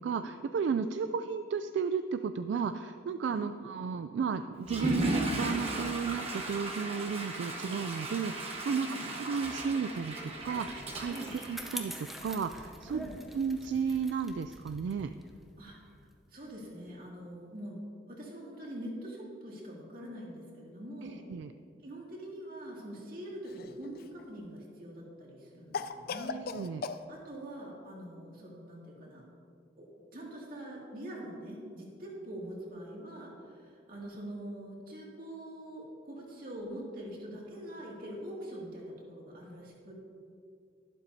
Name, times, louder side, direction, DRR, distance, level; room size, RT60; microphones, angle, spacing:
voice 1, 0.0-8.9 9.3-11.1 11.5-13.0 13.3-15.1 21.0-21.5 26.5-26.8, right 6 dB, 75° right, 10 dB, 0.3 m, -33 dB
Water / Toilet flush, 4.6-12.3, right 1 dB, 35° right, 1.2 m, -36 dB
Bicycle, 10.1-16.7, equal, ahead, 0.6 m, -47 dB
voice 2, 16.3-21.2 21.8-26.5 27.1-29.2 29.8-29.9 30.1-39.9, right 1 dB, 50° right, -4 dB, 2.3 m, -44 dB
Cough, 23.4-24.2 25.7-27.0, left 5 dB, 55° left, 0.4 m, -38 dB
12.0 x 11.5 x 2.7 m, 2.4 s
head